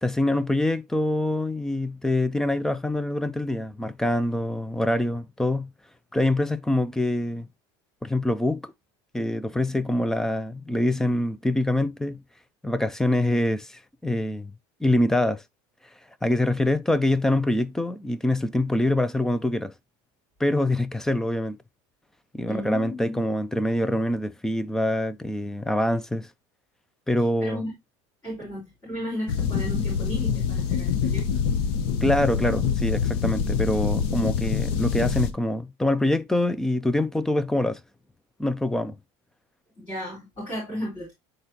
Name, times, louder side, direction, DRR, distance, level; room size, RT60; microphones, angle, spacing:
voice 1, 0.0-5.7 6.1-7.5 8.0-8.7 9.1-12.2 12.6-14.5 14.8-15.4 16.2-19.7 20.4-21.6 22.3-26.3 27.1-27.6 32.0-37.8 38.4-39.0, left 1 dB, 5° left, 0.3 m, -25 dB
voice 2, 22.5-23.2 27.4-27.7 28.2-31.2 39.8-41.1, left 1 dB, 20° left, 4.1 m, -34 dB
sound 1, 29.3-35.3, left 7 dB, 55° left, 0.9 m, -25 dB
9.5 x 3.8 x 2.8 m
cardioid pair, 160°, 11 cm